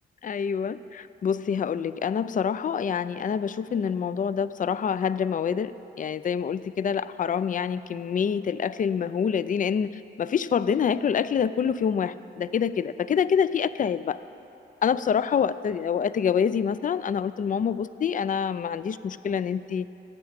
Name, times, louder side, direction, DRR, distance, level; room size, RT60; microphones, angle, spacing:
voice 1, 0.2-14.2 14.8-19.9, left 7 dB, 40° left, 15 dB, 0.4 m, -26 dB
9.0 x 7.3 x 8.9 m, 2.9 s
cardioid pair, 75°, 20 cm